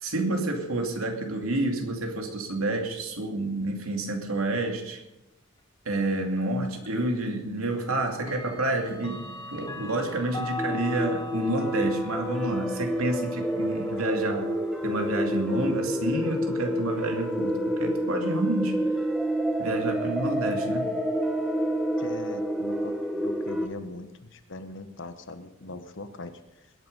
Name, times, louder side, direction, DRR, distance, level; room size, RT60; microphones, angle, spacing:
voice 1, 0.0-5.0 5.8-9.2 9.5-14.5 14.8-18.8 19.6-20.9, right 2 dB, 90° right, 3 dB, 2.6 m, -29 dB
Clock, 6.8-6.9 8.2-15.0, left 1 dB, 20° left, 1.9 m, -40 dB
sound 1, 10.6-23.7, equal, ahead, 1.4 m, -28 dB
voice 2, 22.0-26.7, left 2 dB, 60° left, 10 dB, 1.2 m, -41 dB
21.0 x 8.8 x 5.4 m, 0.93 s
head